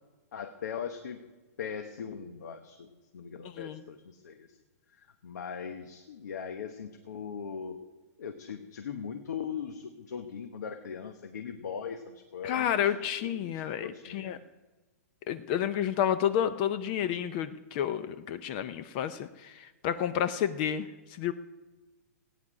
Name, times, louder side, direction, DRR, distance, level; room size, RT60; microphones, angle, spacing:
voice 1, 0.3-1.2 1.6-2.9 3.1-4.5 5.0-7.8 8.2-14.4, left 7 dB, 80° left, 7 dB, 1.1 m, -40 dB
voice 2, 3.4-3.8 12.4-14.4 15.3-21.3, left 9 dB, 30° left, 13 dB, 0.5 m, -30 dB
16.0 x 9.5 x 4.9 m, 1.2 s
hypercardioid pair, 160°, 9 cm